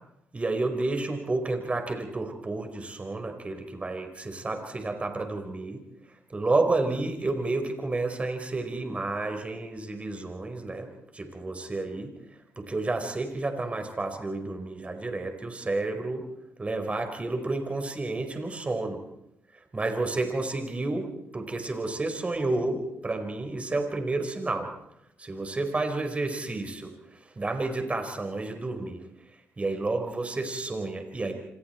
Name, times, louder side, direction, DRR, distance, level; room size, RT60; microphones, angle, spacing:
voice 1, 0.3-5.8 6.3-12.1 12.6-16.2 16.6-19.0 19.7-24.7 25.2-26.9 27.3-29.0 29.6-31.3, right 2 dB, 25° right, 5 dB, 4.8 m, -30 dB
27.5 x 25.5 x 4.6 m, 0.82 s
cardioid pair, 75°, 5 cm